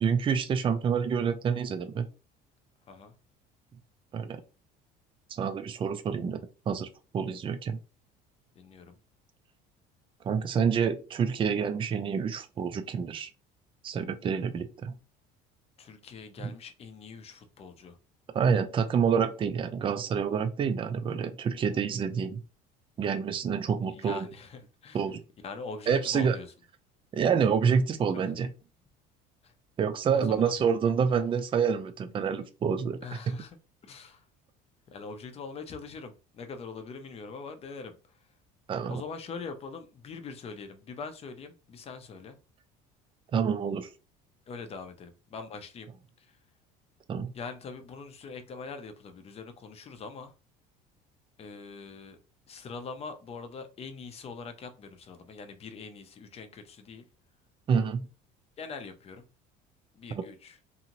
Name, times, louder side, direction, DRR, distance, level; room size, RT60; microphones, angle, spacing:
voice 1, 0.0-2.1 4.1-4.4 5.3-6.4 6.7-6.9 7.1-7.8 10.2-13.3 13.8-14.9 16.4-16.5 18.3-22.4 23.0-24.3 24.9-25.2 25.9-26.4 27.1-28.5 29.8-33.3 38.7-39.0 43.3-43.9 47.1-47.3 57.7-58.1 60.1-60.2, right 6 dB, 30° right, 0.4 m, -27 dB
voice 2, 8.5-9.0 15.8-18.0 23.9-25.0 25.4-26.5 29.4-29.5 30.1-30.6 33.0-33.6 33.8-34.2 34.9-38.2 38.8-42.4 44.5-45.9 46.2-46.4 47.3-50.3 51.4-52.2 52.5-57.1 58.6-59.3 59.9-60.6, left 4 dB, 35° left, 0.6 m, -43 dB
2.7 x 2.6 x 2.9 m
cardioid pair, 120°, 19 cm